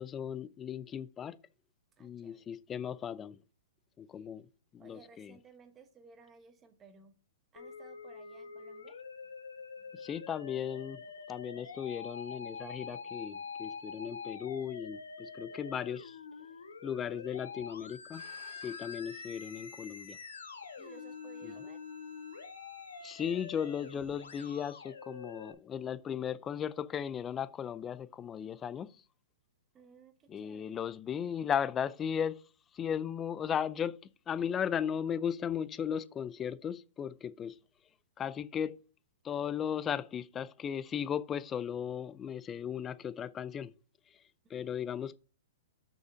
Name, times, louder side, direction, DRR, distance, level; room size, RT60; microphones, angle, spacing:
voice 1, 0.0-1.4 2.0-3.4 4.0-4.5 4.7-5.4 9.9-11.0 11.3-16.2 16.8-18.2 18.6-20.2 21.4-21.5 23.0-28.9 30.3-32.4 32.7-34.0 34.3-37.6 38.2-38.8 39.2-43.7 44.5-45.2, left 8 dB, 20° left, 0.4 m, -36 dB
voice 2, 2.0-2.5 4.1-4.3 4.8-7.2 7.5-9.0 20.8-21.8 29.7-30.8 44.4-44.7, right 5 dB, 20° right, 1.2 m, -58 dB
Musical instrument, 7.6-25.5, left 5 dB, 90° left, 1.3 m, -46 dB
Bowed string instrument, 18.1-24.6, right 7 dB, 55° right, 2.3 m, -60 dB
6.4 x 5.6 x 5.5 m
hypercardioid pair, 135°, 0 cm